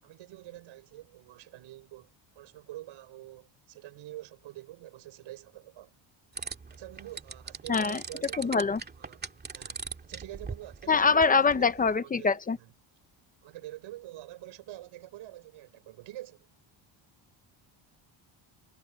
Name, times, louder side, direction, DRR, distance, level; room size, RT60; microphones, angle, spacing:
voice 1, 0.0-5.9 6.7-8.7 9.0-12.7 13.4-16.5, right 15 dB, 75° right, 4.6 m, -46 dB
sound 1, 6.4-12.0, right 5 dB, 20° right, 2.3 m, -41 dB
voice 2, 7.7-8.0 8.4-8.8 10.9-12.6, left 5 dB, 20° left, 0.5 m, -24 dB
cardioid pair, 175°, 48 cm